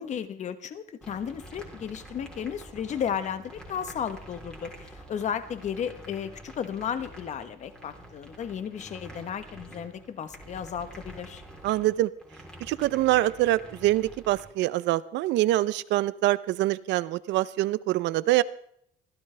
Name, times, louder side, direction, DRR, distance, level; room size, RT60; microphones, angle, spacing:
voice 1, 0.0-11.4, left 8 dB, 40° left, 11 dB, 1.2 m, -34 dB
sound 1, 1.0-14.4, equal, 5° left, 3.6 m, -47 dB
voice 2, 11.6-12.1 12.6-18.4, right 16 dB, 70° right, 17 dB, 0.7 m, -25 dB
25.0 x 15.5 x 3.4 m, 0.70 s
cardioid pair, 150°, 19 cm